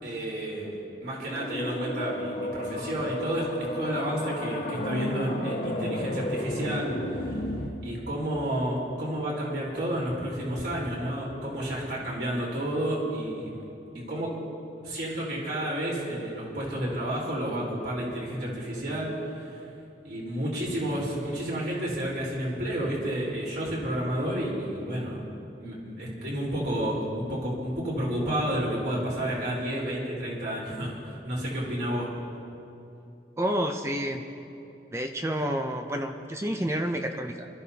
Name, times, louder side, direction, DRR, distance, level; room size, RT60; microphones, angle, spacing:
voice 1, 0.0-7.4 7.8-13.6 13.9-14.4 14.8-19.6 20.0-25.2 25.6-32.1, right 1 dB, 55° right, -5 dB, 4.1 m, -31 dB
sound 1, 1.2-7.7, left 1 dB, 50° left, 1.5 m, -32 dB
voice 2, 33.4-34.2 34.9-37.5, equal, 15° right, 5 dB, 0.6 m, -29 dB
28.5 x 13.0 x 2.9 m, 2.7 s
head